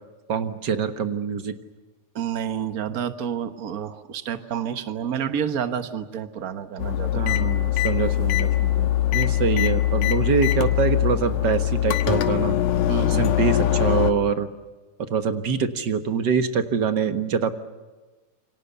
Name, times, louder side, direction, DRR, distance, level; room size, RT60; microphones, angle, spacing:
voice 1, 0.3-1.5 7.1-12.6 13.1-14.5 15.1-17.5, right 6 dB, 50° right, 9 dB, 1.4 m, -24 dB
voice 2, 2.1-7.4 12.9-13.3, right 8 dB, 85° right, 9 dB, 0.8 m, -29 dB
sound 1, 6.8-14.1, left 12 dB, 80° left, 2.8 m, -22 dB
28.0 x 25.0 x 6.9 m, 1.2 s
omnidirectional pair, 3.5 m